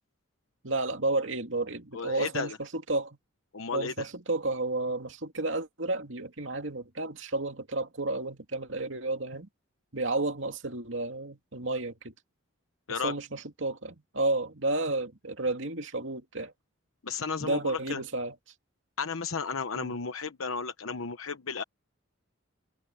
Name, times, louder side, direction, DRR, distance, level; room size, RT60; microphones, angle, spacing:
voice 1, 0.6-3.2 3.7-9.5 9.9-12.1 12.9-16.5 17.4-18.3 19.7-20.0, right 2 dB, 65° right, 2.7 m, -32 dB
voice 2, 1.9-2.6 3.5-4.0 12.9-13.1 17.0-18.0 19.0-21.6, left 5 dB, 90° left, 1.0 m, -33 dB
head